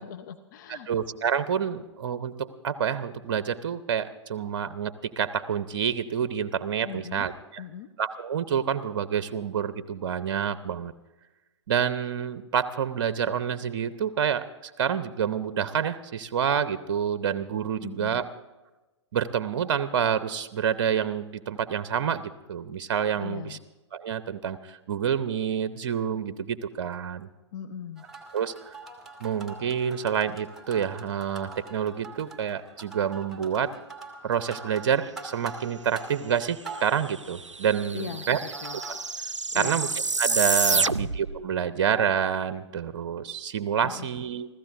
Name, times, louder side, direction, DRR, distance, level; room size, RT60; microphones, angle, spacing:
voice 1, 0.0-0.9 6.8-7.3 7.6-7.9 17.8-18.2 23.2-23.6 27.5-28.1 37.9-38.3 38.6-38.8 39.5-39.8 40.7-41.1 43.8-44.1, left 8 dB, 40° left, 9 dB, 0.7 m, -39 dB
voice 2, 0.7-7.6 8.0-10.9 11.7-18.2 19.1-23.6 23.9-27.3 28.3-28.5 29.2-33.7 34.2-38.4 38.9-39.0 39.5-39.9 40.2-44.6, right 8 dB, 45° right, 13 dB, 0.7 m, -28 dB
sound 1, 28.0-38.9, right 3 dB, ahead, 2.0 m, -44 dB
sound 2, 36.9-37.0 37.1-41.4, right 4 dB, 85° right, 0.4 m, -28 dB
28.0 x 15.0 x 2.6 m, 1.1 s
figure-of-eight pair, 115°, 15 cm